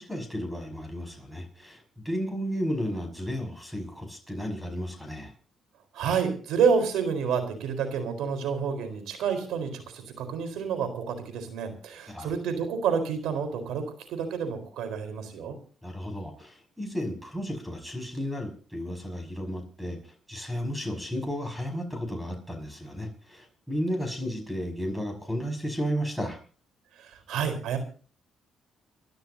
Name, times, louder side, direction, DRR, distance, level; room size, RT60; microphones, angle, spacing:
voice 1, 0.0-5.3 12.1-12.3 15.8-26.4, equal, ahead, 5 dB, 5.8 m, -33 dB
voice 2, 5.9-13.8 14.1-15.6 27.0-27.8, right 6 dB, 85° right, 8 dB, 4.2 m, -29 dB
29.5 x 12.5 x 2.8 m, 0.40 s
cardioid pair, 90°, 0 cm